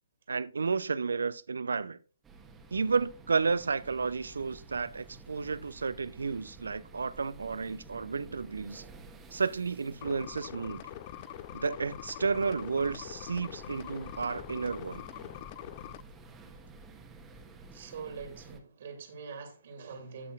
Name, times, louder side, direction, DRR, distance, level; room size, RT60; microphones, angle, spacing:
voice 1, 0.3-2.0 2.7-8.8 9.3-10.8 11.5-15.0, right 4 dB, 65° right, 0.6 m, -32 dB
sound 1, 2.2-18.6, right 3 dB, 10° right, 1.3 m, -52 dB
sound 2, 10.0-16.0, left 14 dB, 35° left, 0.4 m, -44 dB
voice 2, 17.7-20.3, right 5 dB, 50° right, 2.2 m, -44 dB
16.5 x 5.6 x 2.4 m
figure-of-eight pair, 130°, 0 cm